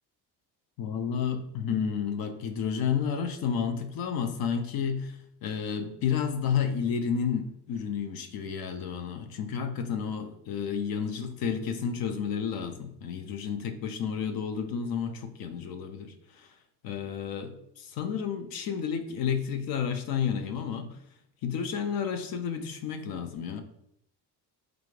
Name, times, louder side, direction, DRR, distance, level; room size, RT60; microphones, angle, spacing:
voice 1, 0.8-16.5 16.8-21.0 21.4-23.6, left 7 dB, 60° left, 8 dB, 0.5 m, -31 dB
4.7 x 2.5 x 3.1 m, 0.74 s
cardioid pair, 160°, 41 cm